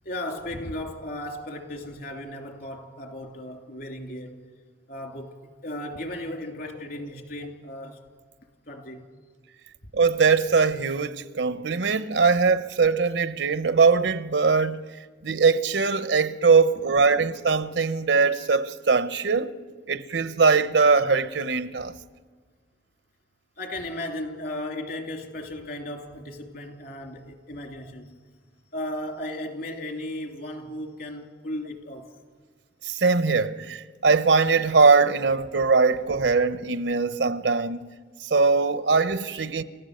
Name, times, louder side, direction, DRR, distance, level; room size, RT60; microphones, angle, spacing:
voice 1, 0.0-4.4 4.9-8.1 8.7-9.1 23.6-28.1 28.7-32.1, left 1 dB, 60° left, 3.0 m, -35 dB
voice 2, 9.9-14.8 15.2-19.5 19.9-21.9 32.8-37.9 38.2-39.6, right 4 dB, 85° right, 0.8 m, -21 dB
29.0 x 14.5 x 6.6 m
head